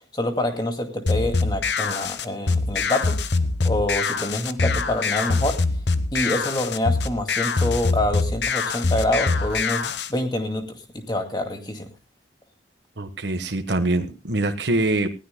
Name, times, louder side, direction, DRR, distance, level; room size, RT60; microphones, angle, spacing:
voice 1, 0.1-3.2 3.6-5.6 6.1-10.7 10.9-11.9, left 1 dB, 25° left, 4 dB, 2.3 m, -26 dB
sound 1, 1.1-10.1, left 4 dB, 75° left, 1.0 m, -24 dB
voice 2, 13.0-15.1, right 2 dB, 75° right, 6 dB, 1.3 m, -24 dB
20.0 x 16.5 x 2.2 m, 0.30 s
head